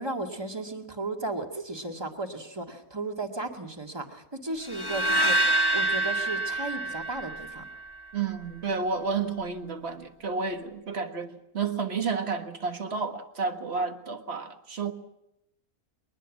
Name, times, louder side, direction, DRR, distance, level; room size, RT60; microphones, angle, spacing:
voice 1, 0.0-7.6, right 2 dB, 15° right, 2.1 m, -35 dB
sound 1, 4.7-7.9, right 2 dB, 20° left, 0.9 m, -26 dB
voice 2, 8.1-14.9, right 5 dB, 45° right, 1.8 m, -31 dB
22.5 x 20.0 x 7.3 m
omnidirectional pair, 1.5 m